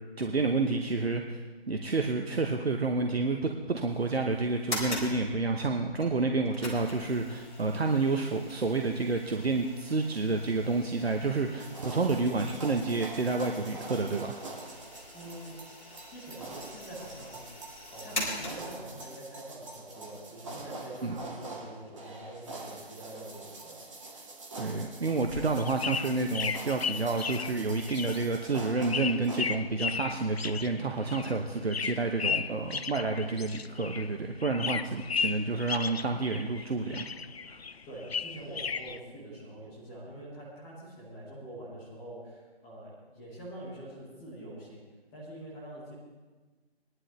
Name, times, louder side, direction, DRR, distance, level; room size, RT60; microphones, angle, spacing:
voice 1, 0.2-1.4 1.7-14.4 21.0-21.2 24.6-37.1 37.5-37.6, right 3 dB, 70° right, 4 dB, 1.0 m, -29 dB
sound 1, 3.8-19.0, left 2 dB, 45° left, 3.8 m, -43 dB
sound 2, 11.6-29.4, right 2 dB, 30° right, 1.8 m, -45 dB
voice 2, 15.1-15.6 16.1-17.4 17.8-23.8 37.9-44.8 45.1-45.9, right 1 dB, 10° left, -7 dB, 1.6 m, -45 dB
sound 3, 25.1-34.1 34.4-36.6 36.9-39.0, left 6 dB, 70° left, 0.6 m, -35 dB
21.0 x 11.0 x 3.2 m, 1.3 s
figure-of-eight pair, 155°, 32 cm